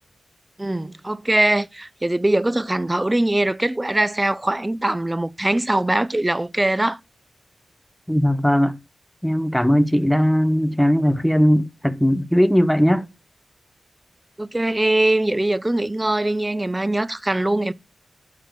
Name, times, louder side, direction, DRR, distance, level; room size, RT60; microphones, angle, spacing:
voice 1, 0.6-7.0 14.4-17.7, right 1 dB, 20° right, 0.6 m, -22 dB
voice 2, 8.1-8.8 9.2-13.1, equal, 5° left, 1.0 m, -18 dB
12.0 x 4.0 x 6.4 m
cardioid pair, 40°, 0 cm